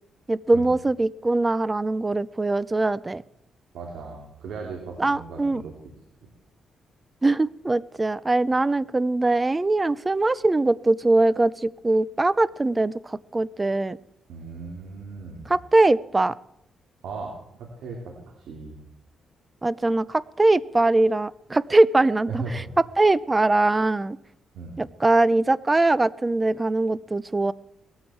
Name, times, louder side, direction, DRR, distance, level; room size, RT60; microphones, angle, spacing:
voice 1, 0.3-3.2 5.0-5.6 7.2-14.0 15.5-16.4 19.6-22.6 23.0-24.2 24.8-27.5, right 2 dB, 20° right, 19 dB, 0.5 m, -22 dB
voice 2, 3.7-5.7 14.3-15.5 17.0-17.3 17.6-18.8 22.3-22.7 24.5-24.7, right 4 dB, 80° right, -1 dB, 3.4 m, -36 dB
19.5 x 14.0 x 4.6 m, 0.76 s
cardioid pair, 110°, 0 cm